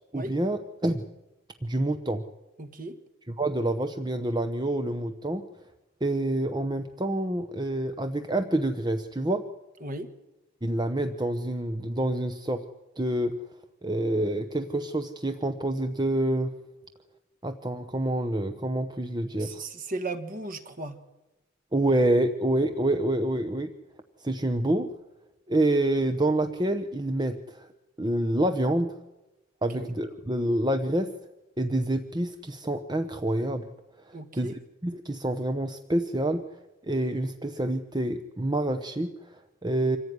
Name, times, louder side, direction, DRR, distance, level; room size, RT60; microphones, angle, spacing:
voice 1, 0.1-1.1 1.6-2.2 3.3-5.4 6.0-9.4 10.6-12.6 13.0-13.3 13.8-16.5 17.4-19.6 21.7-23.7 24.2-24.9 25.5-27.7 28.0-29.0 29.6-31.1 31.6-33.7 34.0-36.4 36.8-40.0, right 1 dB, 20° right, 7 dB, 0.9 m, -27 dB
voice 2, 2.6-3.0 9.8-10.1 19.4-21.0 29.7-29.9 34.1-34.6, right 2 dB, 40° right, 8 dB, 1.8 m, -36 dB
26.0 x 15.5 x 9.7 m, 1.0 s
head